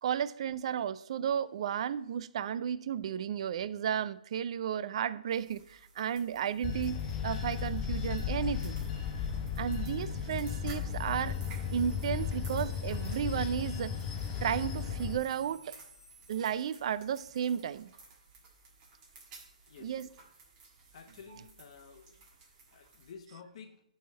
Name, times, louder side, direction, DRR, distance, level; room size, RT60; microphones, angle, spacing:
voice 1, 0.0-8.8 9.6-11.4 11.7-14.0 14.4-15.8 16.3-17.9 19.8-20.1, right 8 dB, 45° right, 0.3 m, -33 dB
sound 1, 5.3-23.1, right 4 dB, 30° right, 1.5 m, -57 dB
Bell / Train, 6.6-15.2, left 7 dB, 20° left, 0.7 m, -35 dB
sound 2, 10.9-16.6, right 3 dB, ahead, 2.2 m, -58 dB
voice 2, 20.9-22.2 22.7-23.8, left 6 dB, 45° left, 0.9 m, -51 dB
10.0 x 3.5 x 4.3 m
hypercardioid pair, 140°, 4 cm